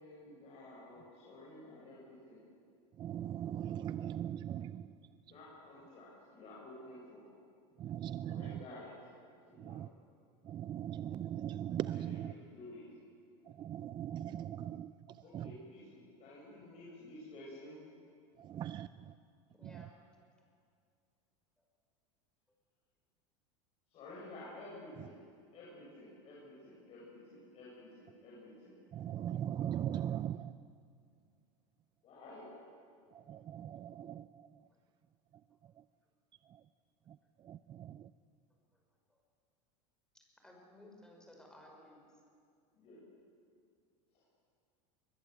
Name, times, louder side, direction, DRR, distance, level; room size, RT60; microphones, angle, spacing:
voice 1, 0.0-2.4 5.2-7.2 8.2-8.9 9.5-9.8 11.9-12.9 15.2-17.8 23.9-25.2 25.5-28.7 32.0-32.5 42.7-43.0 44.1-44.2, left 1 dB, 40° left, -6 dB, 7.1 m, -52 dB
voice 2, 3.0-5.0 7.8-8.6 9.6-9.9 10.4-12.3 13.5-15.5 18.4-19.1 19.6-19.9 28.9-30.6 33.1-34.5 36.5-36.6 37.1-37.2 37.4-38.1, right 10 dB, 30° right, 13 dB, 0.5 m, -40 dB
voice 3, 19.5-20.2 21.6-21.7 38.5-38.8 39.1-39.2 40.4-42.2, left 1 dB, 5° left, 0 dB, 5.8 m, -58 dB
21.5 x 21.5 x 8.1 m, 2.3 s
supercardioid pair, 130°, 16 cm